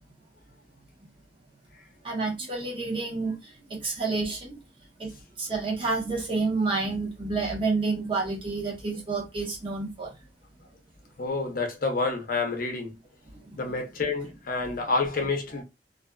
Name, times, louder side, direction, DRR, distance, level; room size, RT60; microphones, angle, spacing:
voice 1, 2.0-4.6 5.0-5.1 5.4-10.1 13.5-13.6, right 3 dB, 30° right, 1.0 m, -29 dB
voice 2, 11.2-13.0 13.6-15.6, left 3 dB, 55° left, 0.7 m, -28 dB
2.5 x 2.4 x 2.2 m
head